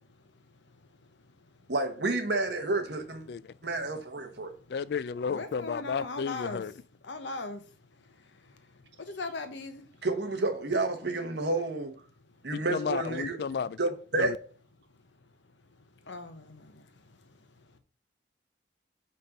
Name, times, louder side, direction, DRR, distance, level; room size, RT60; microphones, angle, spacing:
voice 1, 1.7-3.3 3.6-4.5 10.0-12.0 12.4-13.4 13.8-14.3, right 2 dB, 70° right, 1.3 m, -30 dB
voice 2, 4.7-6.7 12.5-13.8 14.2-14.4, left 6 dB, 60° left, 0.3 m, -32 dB
voice 3, 5.3-6.6 7.1-7.6 9.1-9.8 16.1-16.4, left 3 dB, 80° left, 1.0 m, -37 dB
5.3 x 4.3 x 5.3 m
head